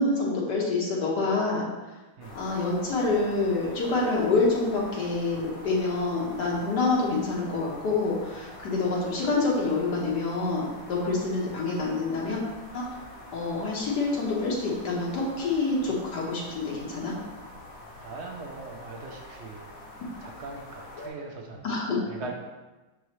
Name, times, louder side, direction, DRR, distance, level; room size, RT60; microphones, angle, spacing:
voice 1, 0.0-1.7 2.3-12.4 12.7-12.8 13.3-17.1 21.6-22.0, left 3 dB, 75° left, -4 dB, 1.7 m, -27 dB
sound 1, 2.2-21.1, left 1 dB, 60° left, 1.3 m, -45 dB
voice 2, 18.0-19.8 20.2-21.8 22.1-22.3, right 3 dB, 55° right, 0 dB, 0.8 m, -40 dB
6.7 x 4.7 x 3.1 m, 1.2 s
omnidirectional pair, 1.8 m